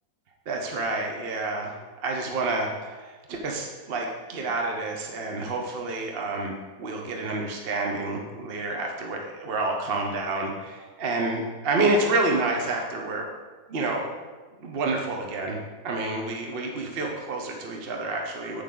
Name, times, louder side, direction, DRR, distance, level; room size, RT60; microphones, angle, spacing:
voice 1, 0.5-13.3 13.7-14.1 14.6-15.6 15.8-18.6, right 2 dB, 45° right, 1 dB, 0.9 m, -29 dB
8.4 x 6.8 x 3.8 m, 1.3 s
omnidirectional pair, 1.8 m